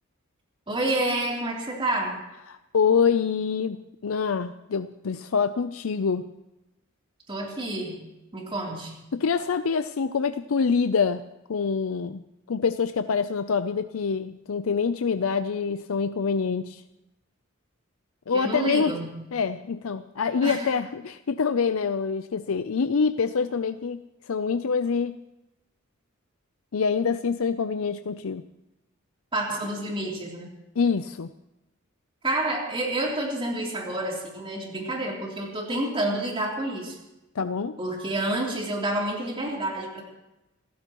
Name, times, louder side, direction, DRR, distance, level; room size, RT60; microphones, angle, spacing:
voice 1, 0.7-2.2 7.3-9.0 18.3-19.2 20.4-20.6 29.3-30.5 32.2-37.0 37.8-40.0, right 1 dB, 25° right, -2 dB, 3.3 m, -29 dB
voice 2, 2.5-3.8 4.0-6.3 9.1-16.8 18.3-18.9 19.3-24.0 24.3-25.2 26.7-28.4 30.8-31.3 37.4-37.8, left 5 dB, 90° left, 10 dB, 0.5 m, -26 dB
28.0 x 14.5 x 3.0 m, 0.96 s
head